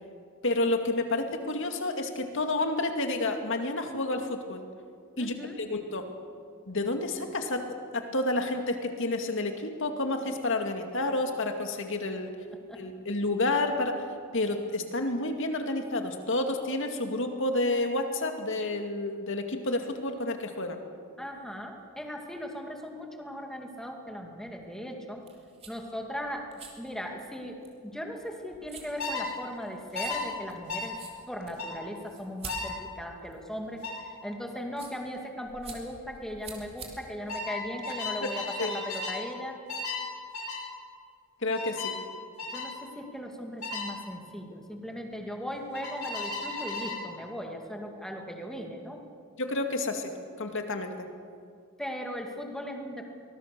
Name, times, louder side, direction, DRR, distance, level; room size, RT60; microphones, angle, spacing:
voice 1, 0.4-4.7 5.2-6.1 6.7-12.3 12.8-14.0 14.3-20.8 38.6-38.7 41.4-42.0 49.4-51.1, left 2 dB, 60° left, 5 dB, 2.3 m, -30 dB
voice 2, 5.2-5.6 12.7-12.8 21.2-25.2 25.7-26.5 26.8-31.0 31.3-33.8 34.2-39.6 42.5-49.0 51.8-53.0, equal, ahead, 2 dB, 2.4 m, -38 dB
sound 1, 25.1-38.3, right 4 dB, 30° right, 3.5 m, -49 dB
sound 2, 29.0-29.3 29.9-30.2 30.7-30.9 31.6-31.8 32.5-32.7 33.8-34.0 35.5-35.7 36.0-36.4 37.3-39.2 39.7-40.0 40.3-40.6 41.5-42.0 42.4-42.7 43.6-43.9 45.7-47.0, left 3 dB, 80° left, 6.0 m, -35 dB
24.0 x 20.0 x 6.9 m, 2.2 s
head